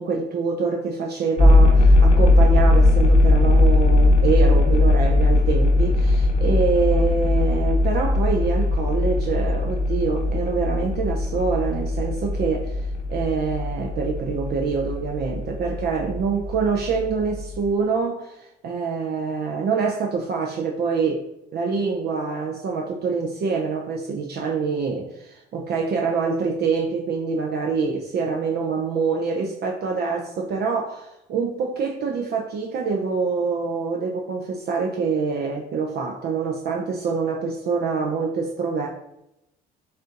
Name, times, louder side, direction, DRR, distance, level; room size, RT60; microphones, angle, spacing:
voice 1, 0.0-38.9, right 5 dB, 55° right, 0 dB, 0.6 m, -25 dB
sound 1, 1.4-17.7, left 2 dB, 35° left, 0.8 m, -19 dB
4.2 x 2.6 x 3.7 m, 0.85 s
supercardioid pair, 65°, 20 cm